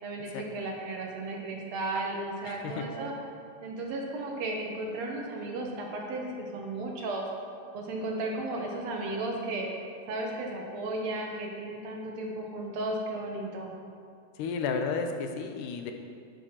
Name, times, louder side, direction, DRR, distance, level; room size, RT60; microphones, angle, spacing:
voice 1, 0.0-3.1 3.6-7.2 7.7-9.7 10.1-13.7, right 2 dB, 70° right, 0 dB, 1.9 m, -34 dB
voice 2, 2.5-2.8 14.4-15.9, left 5 dB, 85° left, 5 dB, 2.3 m, -32 dB
11.0 x 9.5 x 2.9 m, 2.3 s
omnidirectional pair, 3.6 m